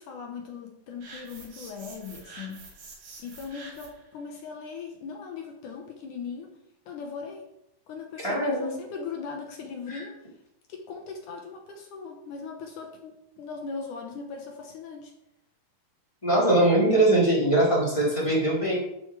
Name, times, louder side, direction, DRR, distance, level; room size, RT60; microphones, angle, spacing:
voice 1, 0.0-2.6 3.2-6.5 6.9-7.4 7.9-10.2 10.7-15.1, left 5 dB, 65° left, 2 dB, 2.2 m, -39 dB
sound 1, 1.0-4.1, right 3 dB, 80° right, 5.9 m, -47 dB
voice 2, 8.2-8.8 9.9-10.0 16.2-18.8, right 1 dB, 10° left, -6 dB, 3.3 m, -22 dB
13.0 x 8.2 x 3.4 m, 0.82 s
omnidirectional pair, 4.6 m